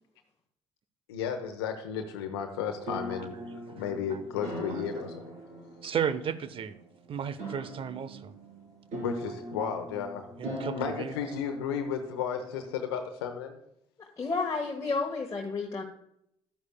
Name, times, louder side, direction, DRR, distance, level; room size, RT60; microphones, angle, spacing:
voice 1, 1.1-5.3 8.9-10.3 10.7-13.6, left 7 dB, 85° left, 5 dB, 0.8 m, -34 dB
sound 1, 2.5-13.1, right 1 dB, 65° right, 3.3 m, -42 dB
voice 2, 3.2-3.6 4.1-4.2 5.8-6.8 7.1-8.3 10.4-11.1, right 8 dB, 45° right, 14 dB, 0.7 m, -34 dB
voice 3, 14.2-15.8, left 4 dB, 30° left, -1 dB, 1.4 m, -31 dB
11.5 x 9.5 x 2.2 m, 0.75 s
hypercardioid pair, 55°, 13 cm